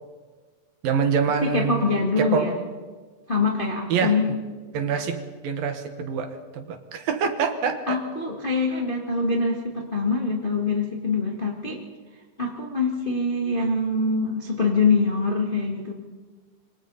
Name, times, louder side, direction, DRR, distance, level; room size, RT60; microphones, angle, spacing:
voice 1, 0.8-1.9 2.2-2.5 3.9-4.2 4.7-8.0, right 6 dB, 65° right, 7 dB, 2.8 m, -25 dB
voice 2, 1.4-2.5 3.3-4.3 4.9-5.0 7.9-11.8 12.4-15.9, left 3 dB, 30° left, -1 dB, 0.9 m, -24 dB
27.0 x 24.5 x 4.2 m, 1.4 s
omnidirectional pair, 4.8 m